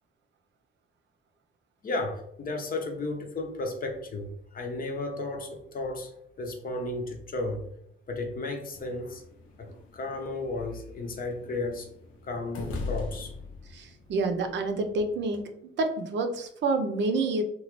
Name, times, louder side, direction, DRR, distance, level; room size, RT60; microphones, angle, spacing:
voice 1, 1.8-6.1 6.4-7.7 8.1-9.2 9.6-11.9 12.2-13.3, left 2 dB, 45° left, 3 dB, 0.7 m, -34 dB
sound 1, 8.7-15.4, left 4 dB, 85° left, 0.6 m, -42 dB
voice 2, 13.7-15.5 15.8-17.4, right 3 dB, 65° right, 5 dB, 0.6 m, -28 dB
2.9 x 2.3 x 3.0 m, 0.70 s
cardioid pair, 90°, 20 cm